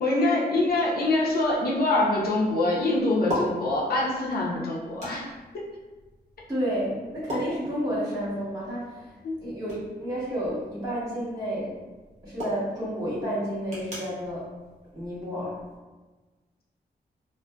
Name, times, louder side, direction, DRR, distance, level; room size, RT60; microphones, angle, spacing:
voice 1, 0.0-5.3 9.2-9.4, left 2 dB, 65° left, -4 dB, 0.5 m, -24 dB
sound 1, 0.6-15.8, left 1 dB, 45° right, 1.0 m, -41 dB
voice 2, 6.5-9.1 9.4-11.7 12.2-14.4 14.9-15.6, equal, 20° right, -11 dB, 1.3 m, -30 dB
2.5 x 2.5 x 2.2 m, 1.2 s
wide cardioid pair, 125°, 17 cm